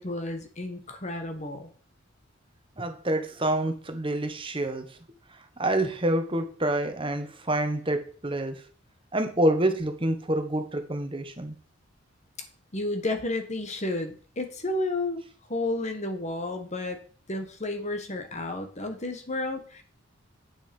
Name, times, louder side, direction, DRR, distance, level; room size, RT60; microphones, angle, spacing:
voice 1, 0.0-1.7 12.7-15.2 15.5-17.0 17.3-19.8, left 2 dB, 35° left, 6 dB, 1.6 m, -31 dB
voice 2, 2.8-5.0 5.6-8.7 9.1-11.5, right 1 dB, 25° right, 7 dB, 1.2 m, -27 dB
8.7 x 6.2 x 5.4 m, 0.42 s
head